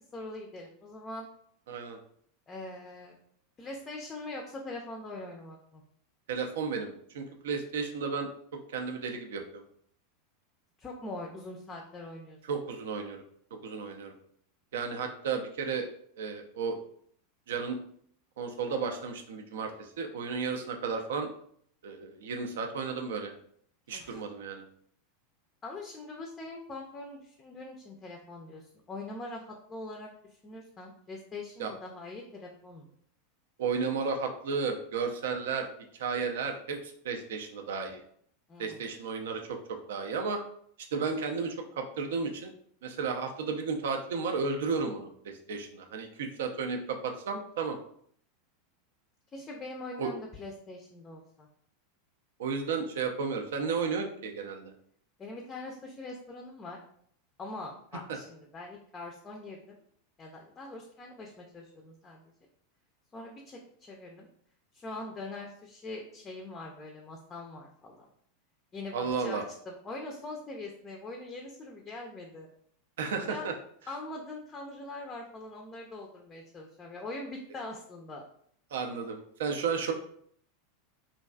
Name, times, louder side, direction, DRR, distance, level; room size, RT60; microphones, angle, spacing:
voice 1, 0.1-1.3 2.5-3.2 3.6-5.8 10.8-12.4 23.9-24.2 25.6-28.6 28.9-30.1 30.4-32.9 38.5-38.9 49.3-51.5 55.2-56.8 57.4-59.7 60.2-62.3 63.1-64.3 64.7-68.1 68.7-72.5 73.3-73.5 73.9-78.2, left 2 dB, 25° left, 0 dB, 0.4 m, -42 dB
voice 2, 1.7-2.0 6.3-8.3 8.7-9.6 12.5-13.2 13.6-14.1 14.7-15.9 16.2-16.7 17.5-17.8 18.4-21.3 21.8-23.3 23.9-24.6 31.6-31.7 33.6-35.7 36.0-38.0 38.6-40.4 40.9-42.5 42.8-47.8 50.0-50.1 52.4-54.7 68.9-69.4 73.0-73.5 78.7-79.9, right 5 dB, 65° right, 4 dB, 0.4 m, -33 dB
2.5 x 2.3 x 2.2 m, 0.64 s
figure-of-eight pair, 90°, 0 cm